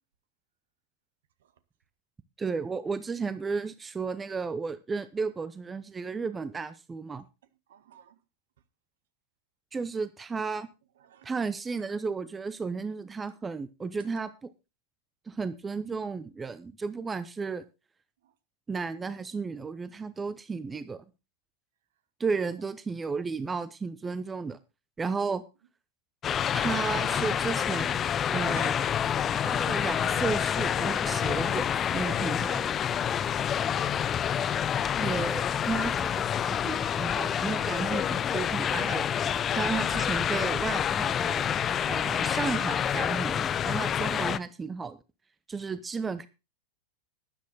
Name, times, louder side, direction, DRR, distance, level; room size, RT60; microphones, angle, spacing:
voice 1, 2.4-7.2 9.7-10.7 11.2-14.5 15.3-17.6 18.7-21.0 22.2-24.6 25.0-25.4 26.5-28.0 28.3-28.7 29.4-31.7 31.9-32.7 35.0-41.5 41.9-45.0 45.5-46.3, right 4 dB, 15° right, 0.7 m, -33 dB
voice 2, 7.7-8.2 11.0-11.3 18.2-18.3 22.5-22.6 28.5-29.0 33.0-33.7, right 10 dB, 60° right, 1.3 m, -52 dB
sound 1, 26.2-44.4, left 9 dB, 25° left, 0.5 m, -28 dB
12.5 x 10.5 x 4.0 m
figure-of-eight pair, 90°, 0 cm